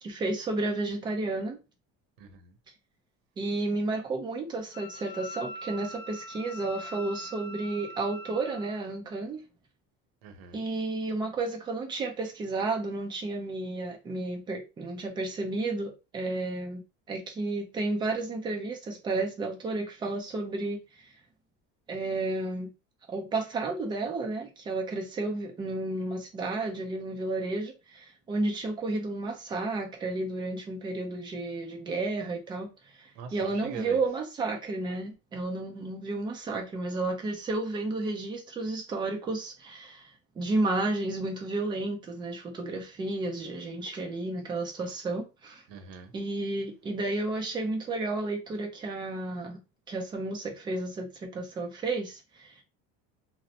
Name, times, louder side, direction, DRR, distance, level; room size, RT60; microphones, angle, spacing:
voice 1, 0.0-1.6 3.4-9.4 10.5-16.8 17.1-21.1 21.9-22.7 23.1-40.1 40.4-45.6 46.1-49.6 49.9-52.6, right 2 dB, 15° right, 0.5 m, -32 dB
voice 2, 2.2-2.5 10.2-10.6 33.2-34.0 45.7-46.1, right 6 dB, 85° right, 0.7 m, -43 dB
Wind instrument woodwind instrument, 4.7-8.8, equal, 85° left, 0.6 m, -43 dB
2.7 x 2.0 x 2.7 m
cardioid pair, 165°, 29 cm